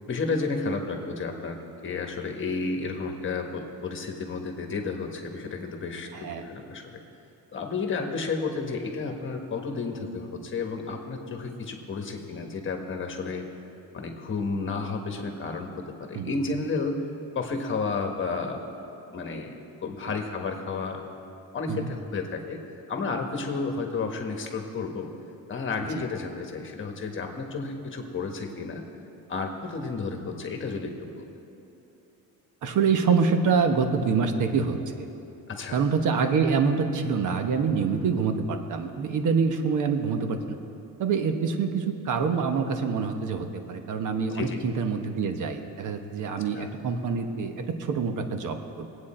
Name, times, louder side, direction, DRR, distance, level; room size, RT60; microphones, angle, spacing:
voice 1, 0.1-7.0 7.5-13.4 13.9-17.0 17.3-18.7 19.1-21.0 21.5-22.6 22.9-25.1 25.5-28.8 29.3-31.3 35.5-35.8 44.3-44.6 46.5-46.7, left 4 dB, 35° left, 3 dB, 1.4 m, -32 dB
voice 2, 6.1-6.4 16.1-16.4 21.7-21.9 25.9-26.0 32.6-35.1 35.7-40.6 41.0-48.9, right 5 dB, 55° right, 6 dB, 1.2 m, -26 dB
22.0 x 8.6 x 4.3 m, 2.9 s
cardioid pair, 155°, 36 cm